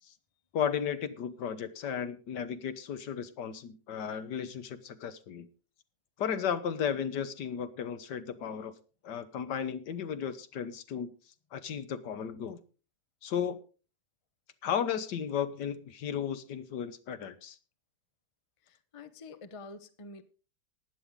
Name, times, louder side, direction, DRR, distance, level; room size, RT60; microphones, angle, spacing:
voice 1, 0.5-5.5 6.2-8.7 9.0-11.1 11.5-12.6 13.2-13.6 14.6-17.6, left 8 dB, 80° left, 12 dB, 1.6 m, -34 dB
voice 2, 18.6-20.2, left 3 dB, 25° left, 10 dB, 0.7 m, -47 dB
15.5 x 10.5 x 3.7 m, 0.35 s
omnidirectional pair, 1.8 m